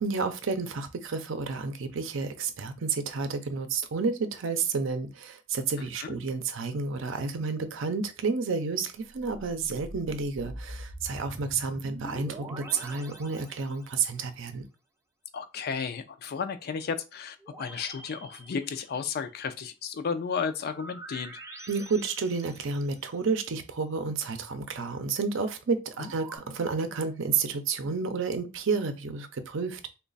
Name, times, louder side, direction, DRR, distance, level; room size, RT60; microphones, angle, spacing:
voice 1, 0.0-14.6 21.7-29.9, right 4 dB, 70° right, 0.5 m, -30 dB
sound 1, 9.1-14.1 17.4-19.2 20.6-23.2 25.9-26.4, right 1 dB, 15° right, 0.5 m, -45 dB
voice 2, 15.3-21.4 26.0-26.1, left 6 dB, 50° left, 0.4 m, -33 dB
3.1 x 2.2 x 3.9 m
head